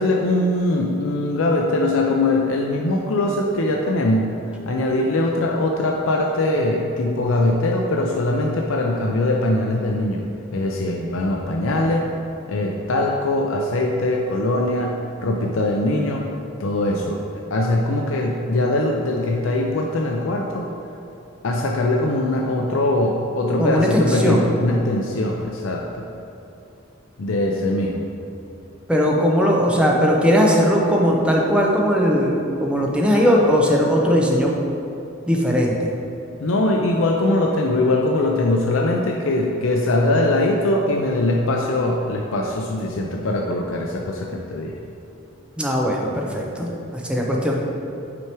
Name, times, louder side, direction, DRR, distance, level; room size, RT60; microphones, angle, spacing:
voice 1, 0.0-4.3 4.7-10.3 10.5-12.0 12.5-16.3 16.6-17.2 17.5-20.7 21.4-26.1 27.2-28.0 36.4-44.8, left 2 dB, 80° left, 0 dB, 0.5 m, -21 dB
voice 2, 23.6-24.4 28.9-34.5 35.3-35.9 45.6-47.5, equal, 5° right, -2 dB, 0.7 m, -19 dB
6.1 x 4.7 x 4.5 m, 2.8 s
head